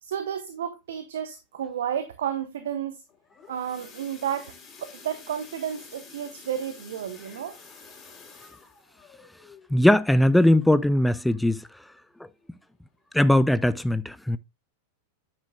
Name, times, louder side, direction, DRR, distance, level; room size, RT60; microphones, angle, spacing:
voice 1, 0.0-3.0 3.5-4.5 4.8-7.6, right 9 dB, 60° right, 1.0 m, -32 dB
sound 1, 3.1-11.8 12.2-12.4 12.7-12.8 13.3-13.4, left 5 dB, 25° left, 3.2 m, -50 dB
voice 2, 9.7-11.7 13.1-14.4, left 1 dB, 5° left, 0.4 m, -20 dB
9.4 x 8.9 x 2.3 m
figure-of-eight pair, 90°, 0 cm